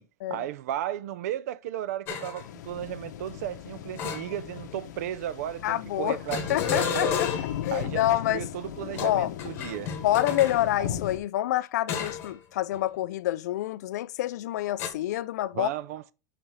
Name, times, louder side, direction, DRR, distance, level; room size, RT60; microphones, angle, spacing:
voice 1, 0.3-7.2 7.7-9.9 10.8-10.9 15.5-16.1, right 12 dB, 60° right, 0.5 m, -34 dB
sound 1, 2.1-2.4 4.0-4.7 6.3-7.7 8.9-10.6 11.9-12.4 12.7-13.0 14.8-14.9, left 7 dB, 25° left, 1.2 m, -32 dB
sound 2, 2.4-11.2, left 10 dB, 85° left, 0.8 m, -38 dB
voice 2, 5.6-6.2 6.5-7.3 7.6-8.5 9.0-9.3 10.0-15.7, left 14 dB, 70° left, 0.4 m, -27 dB
5.0 x 4.7 x 5.5 m
supercardioid pair, 170°, 9 cm